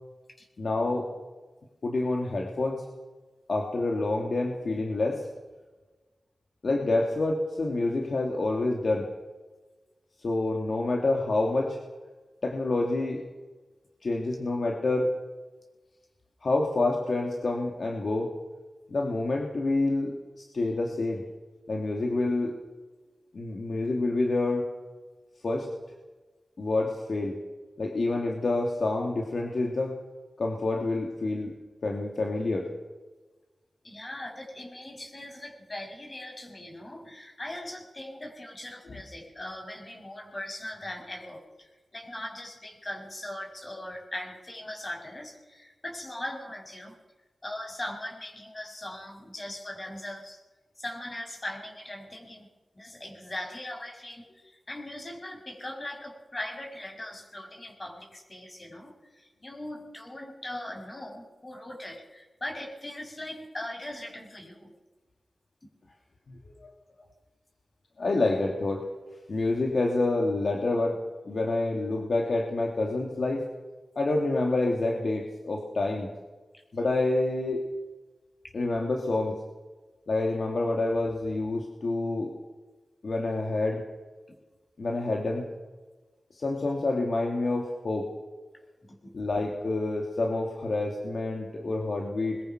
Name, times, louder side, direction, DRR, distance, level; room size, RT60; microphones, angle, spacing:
voice 1, 0.6-1.1 1.8-2.8 3.5-5.3 6.6-9.1 10.2-11.8 12.4-13.2 14.0-15.2 16.4-18.3 18.9-20.1 20.5-21.3 21.7-22.6 23.3-24.7 25.4-25.7 26.6-27.4 27.8-30.0 30.4-31.5 31.8-32.7 66.3-66.7 68.0-68.9 69.3-71.0 71.3-73.5 74.0-76.1 76.7-77.6 78.5-79.4 80.1-82.3 83.0-83.8 84.8-85.4 86.3-88.1 89.1-92.4, left 2 dB, 70° left, 0 dB, 2.8 m, -27 dB
voice 2, 33.8-46.9 47.4-50.4 50.7-52.5 52.7-64.7 67.0-67.1 76.5-76.6 78.4-78.5 84.3-84.4 88.8-89.1, left 1 dB, 35° left, 2 dB, 6.7 m, -40 dB
22.5 x 20.5 x 6.1 m, 1.2 s
cardioid pair, 50°, 0 cm